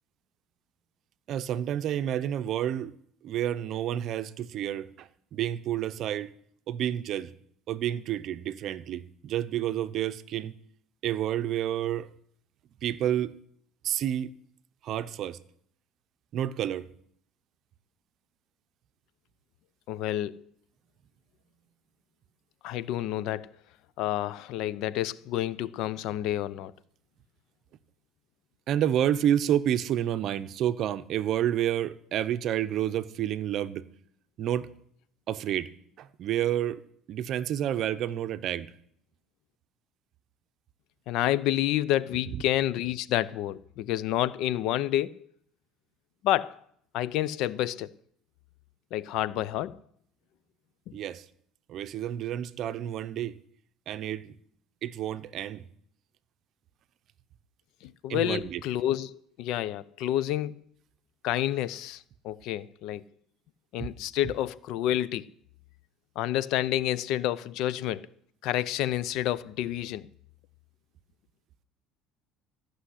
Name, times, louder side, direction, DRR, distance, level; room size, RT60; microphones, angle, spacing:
voice 1, 1.3-2.9 3.2-6.3 6.7-7.3 7.7-10.5 11.0-12.1 12.8-13.4 13.8-14.3 14.8-15.4 16.3-16.9 28.7-33.9 34.4-34.7 35.3-35.7 36.0-36.8 37.1-38.7 42.3-42.4 50.9-51.2 51.7-53.4 53.9-54.3 54.8-55.6 58.1-58.6 63.8-63.9, right 11 dB, 50° right, 0.7 m, -29 dB
voice 2, 19.9-20.4 22.6-23.5 24.0-26.7 41.1-45.3 46.2-46.6 46.9-47.9 48.9-49.8 57.8-60.6 61.2-63.0 63.7-65.3 66.2-68.1 68.4-70.1, left 13 dB, 65° left, 0.5 m, -29 dB
14.0 x 6.4 x 9.9 m
cardioid pair, 130°, 0 cm